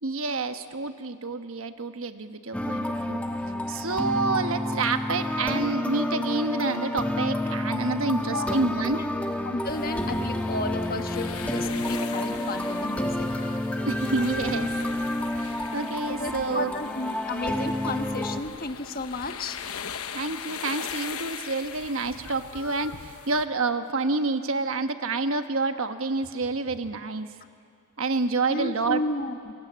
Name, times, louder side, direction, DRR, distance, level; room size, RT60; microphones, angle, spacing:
voice 1, 0.0-3.2 3.7-9.0 13.9-14.7 15.4-16.7 20.1-27.3 28.0-29.0, right 3 dB, 65° right, 8 dB, 1.2 m, -28 dB
sound 1, 2.5-18.4, left 1 dB, 5° left, 1.4 m, -29 dB
voice 2, 8.1-8.6 9.0-9.1 9.4-13.4 16.1-19.6 28.5-29.5, left 2 dB, 40° left, 7 dB, 1.3 m, -33 dB
sound 2, 9.6-23.5, left 7 dB, 75° left, 1.0 m, -40 dB
28.0 x 22.5 x 8.8 m, 2.3 s
head